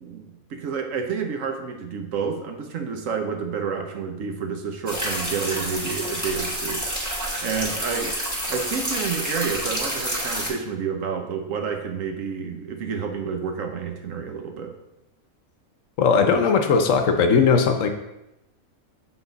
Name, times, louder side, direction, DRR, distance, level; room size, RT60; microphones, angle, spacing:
voice 1, 0.0-6.9 7.4-8.2 8.5-14.7, right 6 dB, 70° right, 4 dB, 1.1 m, -29 dB
sound 1, 4.9-10.5, equal, 15° right, 1.2 m, -28 dB
voice 2, 16.0-17.9, left 5 dB, 70° left, 5 dB, 1.0 m, -18 dB
7.1 x 4.1 x 3.9 m, 0.91 s
omnidirectional pair, 1.5 m